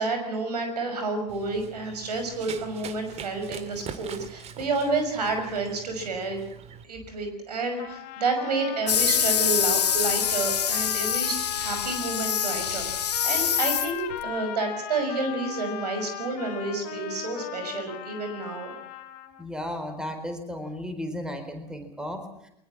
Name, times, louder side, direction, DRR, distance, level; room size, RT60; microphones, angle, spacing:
voice 1, 0.0-6.4 6.8-18.7, right 3 dB, 75° right, 6 dB, 6.0 m, -30 dB
Run, 1.3-6.8, right 7 dB, 30° right, 2.1 m, -43 dB
Trumpet - B natural minor - bad-tempo, 7.8-19.5, left 12 dB, 45° left, 3.3 m, -38 dB
sound 1, 8.9-14.2, left 8 dB, 75° left, 2.1 m, -25 dB
voice 2, 19.4-22.5, left 1 dB, 5° right, 7 dB, 4.2 m, -34 dB
23.0 x 20.5 x 7.6 m, 0.77 s
figure-of-eight pair, 85°, 21 cm